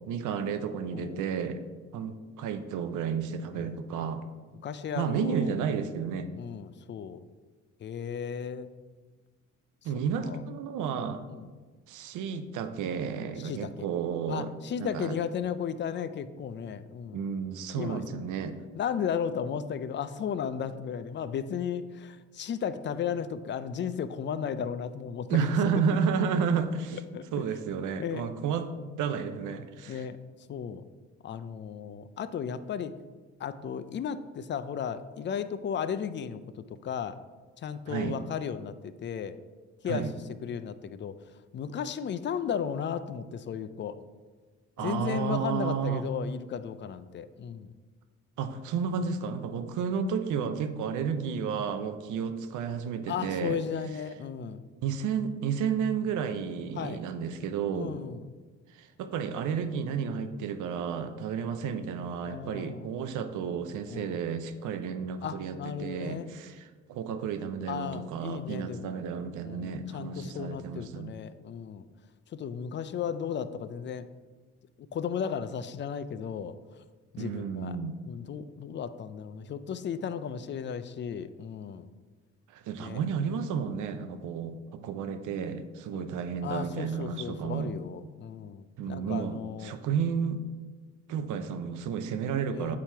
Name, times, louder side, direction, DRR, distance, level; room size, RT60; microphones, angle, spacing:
voice 1, 0.1-1.6 1.9-4.2 5.0-6.3 9.8-11.2 11.9-14.5 14.8-15.2 17.1-18.6 25.3-27.0 27.3-28.7 29.0-30.0 37.9-38.2 39.9-40.1 44.8-46.1 48.4-53.6 54.8-57.9 58.8-71.1 77.2-78.0 82.5-87.7 88.8-90.4 91.1-92.8, right 6 dB, 80° right, 9 dB, 0.6 m, -32 dB
voice 2, 4.6-5.6 6.3-7.2 7.8-8.7 10.2-10.4 11.3-11.5 13.4-13.9 14.3-17.2 17.7-18.4 18.7-25.4 25.7-25.8 26.9-27.5 28.0-28.3 29.9-30.2 30.5-30.8 31.2-32.9 33.4-36.4 36.7-37.2 37.6-39.4 39.8-40.1 40.4-41.1 41.5-44.0 44.8-47.7 50.8-50.9 53.1-54.6 56.7-57.0 57.7-58.3 62.2-62.9 63.9-64.2 65.2-66.3 67.7-69.0 69.4-71.9 72.3-74.1 74.9-76.5 77.1-77.8 78.0-81.9 82.8-83.0 85.9-86.1 86.4-89.8 92.5-92.8, left 7 dB, 40° left, 12 dB, 0.4 m, -35 dB
8.4 x 2.9 x 4.4 m, 1.4 s
cardioid pair, 90°, 30 cm